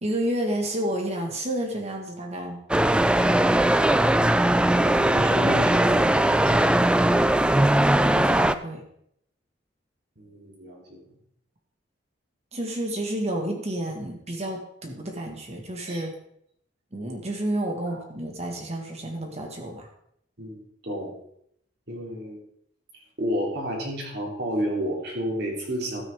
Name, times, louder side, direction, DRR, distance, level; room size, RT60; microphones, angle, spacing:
voice 1, 0.0-2.6 7.4-8.8 12.5-16.2 16.9-19.9, right 1 dB, 35° right, 2 dB, 1.7 m, -30 dB
sound 1, 2.7-8.5, right 1 dB, 5° right, 0.3 m, -20 dB
voice 2, 4.7-6.7 10.2-11.0 15.9-16.0 17.9-18.0 20.4-21.1 21.9-22.4 23.2-26.0, equal, 60° right, -2 dB, 3.4 m, -31 dB
13.0 x 9.0 x 3.6 m, 0.72 s
head